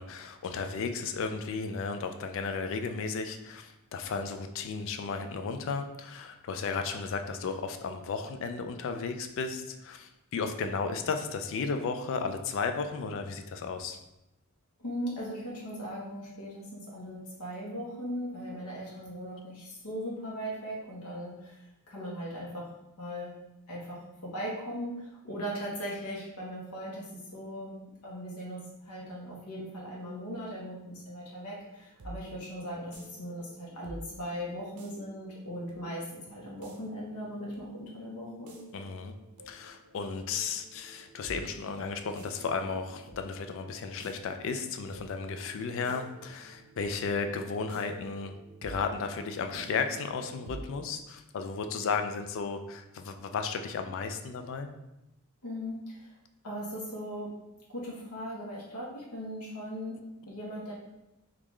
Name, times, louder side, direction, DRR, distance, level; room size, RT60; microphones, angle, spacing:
voice 1, 0.0-14.0 38.7-39.1 39.5-48.3 48.6-54.7, left 5 dB, 60° left, 7 dB, 0.3 m, -34 dB
voice 2, 14.8-21.6 21.9-22.7 23.0-23.3 23.7-27.7 28.0-38.6 55.4-56.1 56.4-57.3 57.7-59.9 60.3-60.7, equal, 90° left, -4 dB, 0.9 m, -39 dB
sound 1, 31.8-51.0, right 1 dB, 85° right, 0.6 m, -50 dB
3.6 x 2.4 x 3.0 m, 0.92 s
head